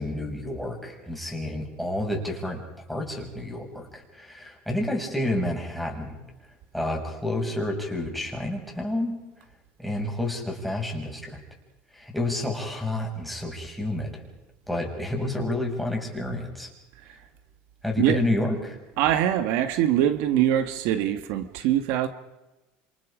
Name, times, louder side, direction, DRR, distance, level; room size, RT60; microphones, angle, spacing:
voice 1, 0.0-2.6 2.9-6.2 6.7-9.2 9.8-11.4 11.9-14.2 14.7-16.7 17.8-18.8, left 1 dB, ahead, 0 dB, 7.0 m, -29 dB
voice 2, 19.0-22.1, right 11 dB, 70° right, 10 dB, 1.6 m, -23 dB
28.0 x 27.0 x 5.1 m, 1.0 s
supercardioid pair, 125°, 4 cm